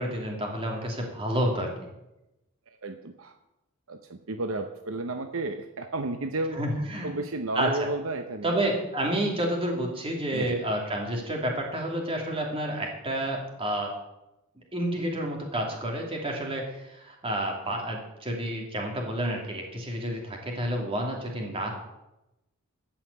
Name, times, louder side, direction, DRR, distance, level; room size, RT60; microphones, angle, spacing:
voice 1, 0.0-1.7 6.5-7.1 7.5-7.7 8.4-13.9 14.7-21.7, right 1 dB, 25° right, 0 dB, 2.8 m, -30 dB
voice 2, 2.7-3.3 3.9-6.6 7.0-8.7 10.3-10.6, right 2 dB, 65° right, 7 dB, 0.8 m, -33 dB
14.5 x 5.8 x 8.3 m, 0.94 s
head